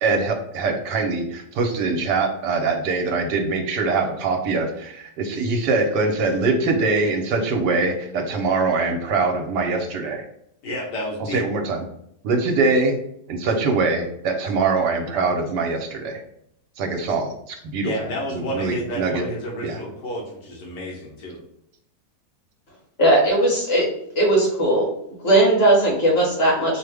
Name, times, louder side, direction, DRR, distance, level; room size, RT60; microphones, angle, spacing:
voice 1, 0.0-10.2 11.3-11.8 12.2-13.0 13.3-16.2 16.8-17.9 18.3-19.2 19.6-19.8, right 3 dB, 80° right, 3 dB, 1.3 m, -23 dB
voice 2, 10.6-11.4 17.8-21.4, equal, 80° left, -4 dB, 1.5 m, -30 dB
voice 3, 23.0-23.8 24.1-24.9 25.2-26.8, right 1 dB, 40° left, -4 dB, 1.5 m, -18 dB
4.8 x 2.1 x 3.4 m, 0.73 s
omnidirectional pair, 1.8 m